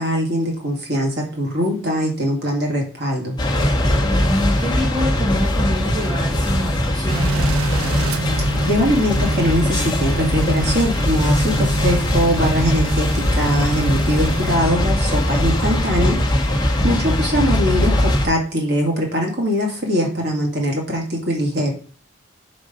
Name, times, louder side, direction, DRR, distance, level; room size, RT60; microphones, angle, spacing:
voice 1, 0.0-3.4 8.4-21.7, equal, 50° right, 0 dB, 2.3 m, -22 dB
sound 1, 3.4-18.3, left 1 dB, 20° left, 1.3 m, -20 dB
voice 2, 4.0-8.0 16.8-17.5, equal, 20° right, -2 dB, 1.4 m, -27 dB
sound 2, 7.1-14.6, right 1 dB, 85° right, 0.6 m, -26 dB
5.2 x 5.1 x 5.1 m, 0.42 s
head